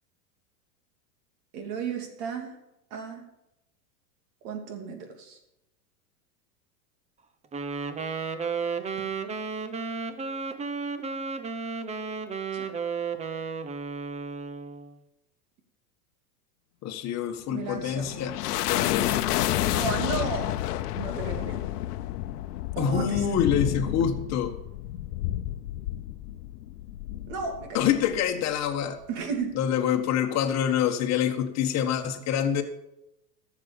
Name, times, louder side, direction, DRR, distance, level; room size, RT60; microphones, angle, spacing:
voice 1, 1.5-2.6 2.9-3.2 4.4-5.4 12.5-12.7 17.5-18.1 19.7-20.5 20.9-21.7 22.8-23.3 27.3-27.9 29.1-29.6, right 5 dB, 55° right, 4 dB, 3.0 m, -34 dB
Wind instrument woodwind instrument, 7.5-15.0, right 5 dB, 15° right, 0.7 m, -33 dB
voice 2, 16.8-18.3 18.7-19.5 22.8-24.5 27.7-29.0 29.5-32.6, left 8 dB, 35° left, 4 dB, 1.6 m, -26 dB
sound 1, 17.5-28.3, left 14 dB, 75° left, 0.9 m, -30 dB
13.5 x 7.4 x 7.0 m, 0.88 s
supercardioid pair, 125°, 47 cm